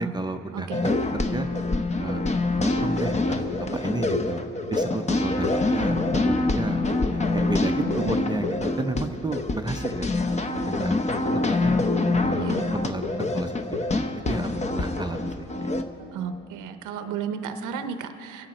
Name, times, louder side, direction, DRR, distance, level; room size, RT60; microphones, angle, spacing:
voice 1, 0.0-1.7 2.0-2.2 2.6-4.4 4.7-6.8 7.1-11.8 12.2-15.5, right 2 dB, 15° right, 5 dB, 0.5 m, -32 dB
sound 1, 0.7-15.8, left 2 dB, 25° left, 0.8 m, -25 dB
voice 2, 7.8-8.4 12.3-12.7 16.1-18.5, right 7 dB, 85° right, 8 dB, 0.7 m, -33 dB
24.0 x 8.7 x 4.2 m, 2.9 s
cardioid pair, 90°, 30 cm